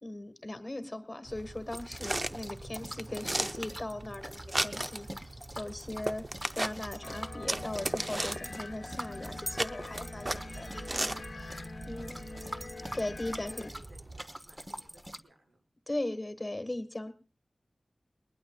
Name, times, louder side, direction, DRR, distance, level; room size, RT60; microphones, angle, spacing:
voice 1, 0.0-6.3 6.5-11.6 11.9-12.2 12.9-13.7 15.9-17.1, left 1 dB, 30° left, 10 dB, 1.5 m, -39 dB
sound 1, 1.3-14.2, right 1 dB, 30° right, 0.6 m, -38 dB
sound 2, 1.7-15.2, equal, 15° right, 1.0 m, -45 dB
sound 3, 7.0-13.7, left 3 dB, 75° left, 0.9 m, -45 dB
voice 2, 13.3-15.6, right 1 dB, 85° right, 3 dB, 4.7 m, -62 dB
21.0 x 20.5 x 2.3 m, 0.35 s
wide cardioid pair, 85°, 0 cm